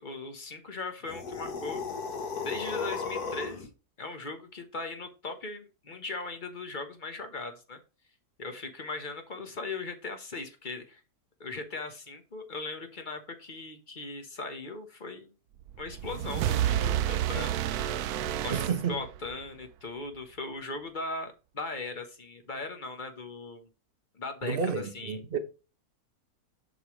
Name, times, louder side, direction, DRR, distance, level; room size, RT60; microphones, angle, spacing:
voice 1, 0.0-1.8 2.4-3.7 4.0-7.8 8.4-11.0 11.4-15.3 15.8-18.0 18.4-23.7 24.1-25.2, left 3 dB, 35° left, 1.2 m, -39 dB
sound 1, 1.0-3.7, left 5 dB, 75° left, 1.9 m, -35 dB
sound 2, 15.7-19.5, right 11 dB, 75° right, 1.0 m, -30 dB
voice 2, 18.5-19.0 24.4-25.4, right 6 dB, 40° right, 1.1 m, -30 dB
8.0 x 5.5 x 3.1 m
omnidirectional pair, 1.6 m